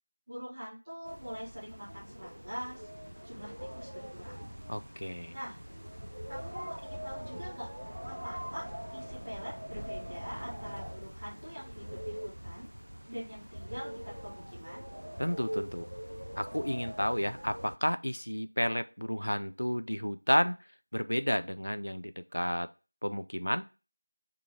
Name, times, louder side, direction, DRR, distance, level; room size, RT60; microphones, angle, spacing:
voice 1, 0.3-2.9 3.2-4.4 5.3-5.6 6.3-7.7 8.0-12.7 13.1-14.9, equal, 10° right, -12 dB, 0.9 m, -44 dB
sound 1, 1.0-17.8, equal, 65° right, 0.3 m, -43 dB
voice 2, 4.7-5.3 15.2-15.9 16.4-20.6 20.9-22.7 23.0-23.6, equal, 65° left, 11 dB, 0.4 m, -31 dB
3.6 x 2.9 x 4.8 m, 0.32 s
figure-of-eight pair, 180°, 0 cm